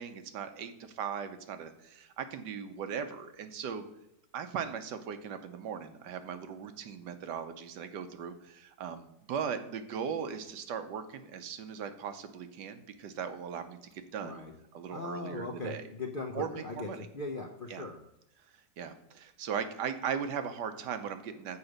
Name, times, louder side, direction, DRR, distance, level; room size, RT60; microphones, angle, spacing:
voice 1, 0.0-3.8 4.3-14.4 14.7-15.9 16.3-17.1 17.7-17.8 18.5-21.6, right 7 dB, 85° right, 9 dB, 1.4 m, -38 dB
voice 2, 14.2-14.5 14.9-18.0, left 3 dB, 55° left, 2 dB, 0.6 m, -39 dB
7.0 x 4.9 x 6.4 m, 0.84 s
omnidirectional pair, 1.8 m